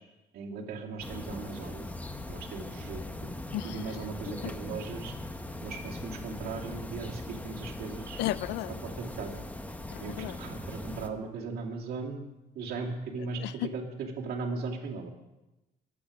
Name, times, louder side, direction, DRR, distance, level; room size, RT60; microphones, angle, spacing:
voice 1, 0.3-1.9 2.3-3.3 3.6-5.1 5.6-8.2 8.8-9.5 10.0-12.2 12.5-15.1, right 4 dB, 65° right, -1 dB, 2.5 m, -38 dB
sound 1, 1.0-11.1, left 1 dB, 10° left, 1.0 m, -40 dB
voice 2, 3.5-3.9 4.4-4.5 8.2-8.7 9.9-10.4 13.4-13.7, left 15 dB, 85° left, 17 dB, 0.5 m, -34 dB
22.0 x 8.6 x 5.0 m, 1.0 s
cardioid pair, 110°, 17 cm